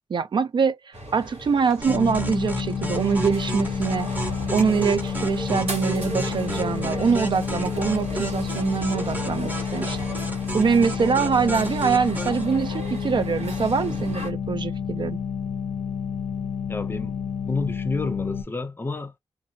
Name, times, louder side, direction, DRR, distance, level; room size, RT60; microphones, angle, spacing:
voice 1, 0.1-4.1 4.5-10.0 10.5-15.2, right 6 dB, 50° right, 0.3 m, -24 dB
sound 1, 0.9-14.3, right 1 dB, 90° right, 1.5 m, -36 dB
sound 2, 1.8-12.4, right 2 dB, 15° right, 0.7 m, -34 dB
sound 3, 1.9-18.4, left 7 dB, 90° left, 0.7 m, -30 dB
voice 2, 16.7-19.2, left 3 dB, 20° left, 0.5 m, -30 dB
2.7 x 2.2 x 2.6 m
wide cardioid pair, 130°, 10 cm